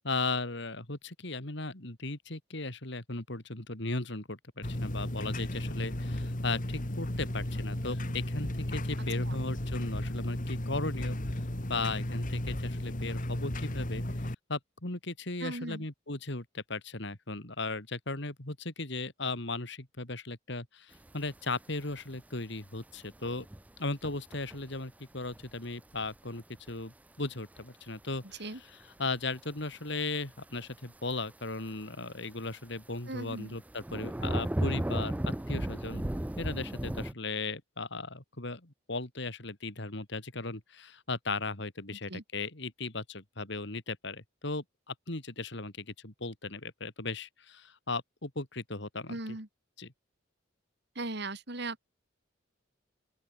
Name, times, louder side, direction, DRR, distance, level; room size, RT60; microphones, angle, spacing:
voice 1, 0.0-11.2 11.7-14.0 14.5-23.4 23.8-28.4 29.0-36.1 36.4-49.2 49.8-49.9, left 3 dB, 60° left, 3.1 m, -37 dB
sound 1, 4.6-14.3, left 1 dB, 40° left, 2.2 m, -34 dB
voice 2, 15.4-15.8 28.4-28.6 33.1-33.6 42.1-42.2 49.1-49.5 50.9-51.9, right 2 dB, 55° right, 3.3 m, -38 dB
sound 2, 21.0-21.1 21.7-22.2 22.9-23.7 23.9-24.8 25.3-25.5 26.0-26.7 27.6-27.7 29.4-29.5 29.8-30.0 30.6-30.7 31.1-31.7 32.3-32.5 33.5-37.1, right 1 dB, 5° right, 0.3 m, -34 dB
open air
head